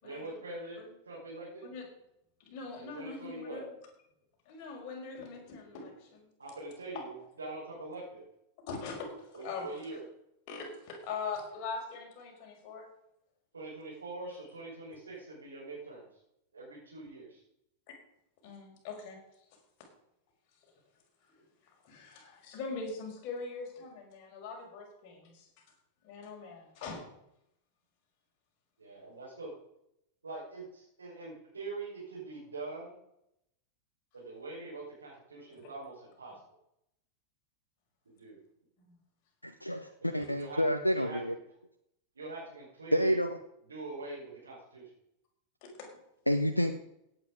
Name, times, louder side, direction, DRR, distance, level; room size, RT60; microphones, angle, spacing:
voice 1, 0.0-1.6 2.7-3.7 6.4-8.3 9.3-10.1 13.5-16.2 16.5-17.4 28.8-29.5 30.2-33.0 34.1-36.3 38.1-38.4 40.1-40.6 40.9-41.2 42.1-43.2 43.7-44.9, right 2 dB, 75° right, -7 dB, 5.4 m, -44 dB
voice 2, 2.4-3.6 4.5-6.3 8.7-9.7 10.5-12.9 18.4-19.2 21.3-21.5 21.8-25.5 26.0-27.0 38.8-38.9 45.8-45.9, left 4 dB, 40° left, 0 dB, 5.3 m, -42 dB
voice 3, 39.4-41.3 42.9-43.4 46.3-46.7, equal, 90° left, 8 dB, 0.7 m, -29 dB
16.5 x 9.0 x 5.2 m, 0.80 s
figure-of-eight pair, 90°, 0 cm